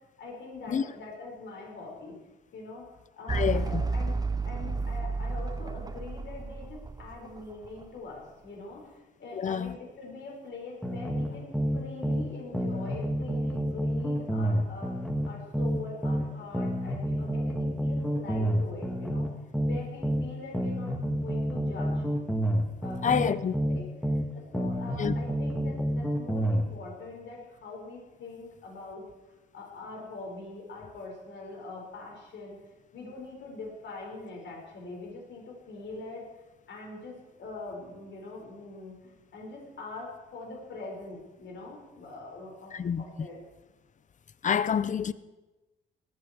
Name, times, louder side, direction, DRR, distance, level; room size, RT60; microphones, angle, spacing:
voice 1, 0.2-2.2 2.5-2.8 3.1-4.2 4.5-19.3 19.6-22.0 22.8-23.9 24.1-29.1 29.5-36.3 36.7-43.4, left 3 dB, 65° left, 6.0 m, -43 dB
voice 2, 3.3-3.8 9.3-9.7 23.0-23.5 25.0-25.1 42.7-43.0 44.4-45.1, left 7 dB, 40° left, 0.7 m, -27 dB
sound 1, 3.3-7.8, right 3 dB, 20° right, 0.7 m, -32 dB
sound 2, 10.8-12.3 12.5-16.3 16.5-20.3 20.5-24.3 24.5-26.7, equal, ahead, 2.1 m, -29 dB
18.5 x 14.0 x 4.9 m
cardioid pair, 90°, 20 cm